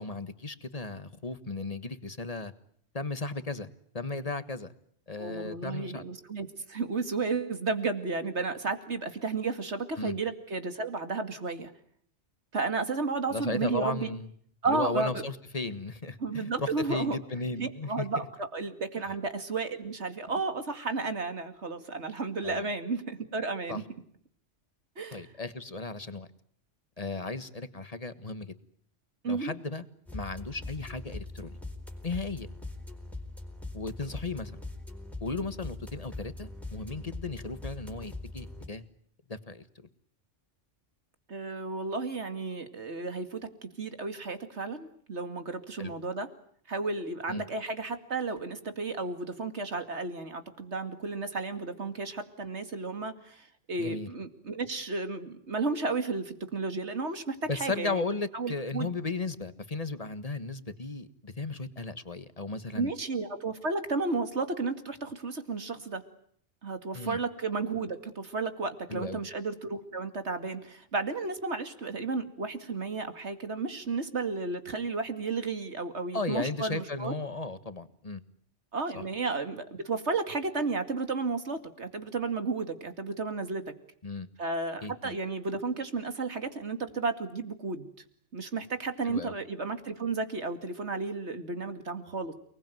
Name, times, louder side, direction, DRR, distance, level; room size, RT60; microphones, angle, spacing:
voice 1, 0.0-2.5 2.9-4.7 5.1-6.0 10.0-10.1 13.3-14.3 14.6-18.1 22.4-22.7 23.7-23.8 25.1-26.3 27.0-28.5 29.2-29.8 30.1-31.6 32.0-32.5 33.7-34.6 35.2-38.8 39.3-39.9 45.8-45.9 47.3-47.4 53.8-54.1 57.5-62.9 66.9-67.2 68.9-69.2 76.1-78.2 84.0-84.3 84.8-85.2 89.0-89.3, left 3 dB, 30° left, 12 dB, 1.6 m, -35 dB
voice 2, 5.2-11.7 12.5-14.1 14.6-15.2 16.2-17.2 17.6-23.8 25.0-25.3 29.2-29.5 41.3-46.3 46.7-58.0 58.3-58.9 62.8-66.0 66.6-77.1 78.7-83.7 84.4-87.9 88.3-92.3, right 3 dB, 65° right, 9 dB, 2.7 m, -33 dB
sound 1, 30.1-38.7, left 2 dB, ahead, 4.4 m, -42 dB
29.5 x 20.5 x 9.3 m, 0.65 s
omnidirectional pair, 1.2 m